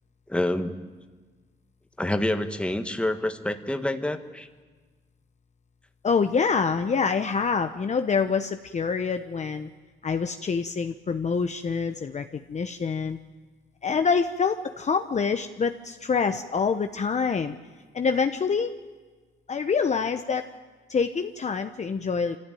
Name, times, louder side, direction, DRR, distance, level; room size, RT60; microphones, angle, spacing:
voice 1, 0.3-0.7 2.0-4.5 13.9-14.0, left 1 dB, 5° left, 7 dB, 1.6 m, -27 dB
voice 2, 6.0-9.7 10.0-13.2 13.8-17.5 17.9-18.7 19.5-20.4 20.9-22.4, left 5 dB, 35° left, 7 dB, 0.9 m, -26 dB
25.0 x 15.0 x 9.2 m, 1.4 s
cardioid pair, 90°, 20 cm